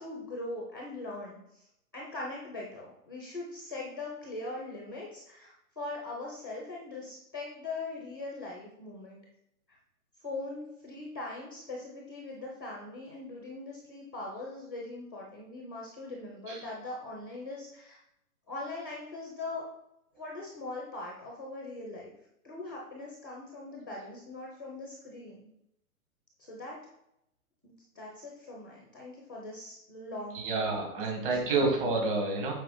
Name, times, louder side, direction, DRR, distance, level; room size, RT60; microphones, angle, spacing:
voice 1, 0.0-1.7 1.9-9.2 10.2-18.0 18.5-19.7 20.2-22.1 22.4-25.5 26.4-26.8 27.6-30.4 30.9-31.1 31.4-31.5, left 2 dB, 15° left, -2 dB, 0.4 m, -41 dB
voice 2, 30.3-32.5, right 3 dB, 35° right, 1 dB, 1.9 m, -29 dB
7.7 x 4.3 x 3.8 m, 0.80 s
hypercardioid pair, 160°, 44 cm